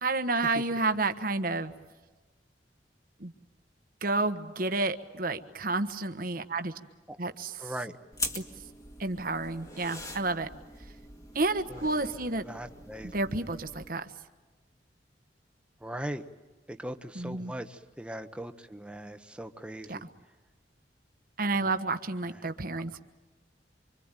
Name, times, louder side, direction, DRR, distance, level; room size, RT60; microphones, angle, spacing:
voice 1, 0.0-1.7 3.2-3.3 4.0-6.7 7.2-7.7 8.3-8.4 9.0-10.5 11.3-12.4 13.1-14.1 17.1-17.5 19.9-20.0 21.4-23.0, right 3 dB, 50° right, 8 dB, 1.3 m, -30 dB
voice 2, 7.6-7.9 11.7-11.8 12.5-13.1 15.8-16.2 16.7-20.0, right 1 dB, 5° right, 8 dB, 1.1 m, -39 dB
sound 1, 8.1-13.9, left 2 dB, 20° left, 2.1 m, -42 dB
26.0 x 25.5 x 9.1 m, 1.2 s
head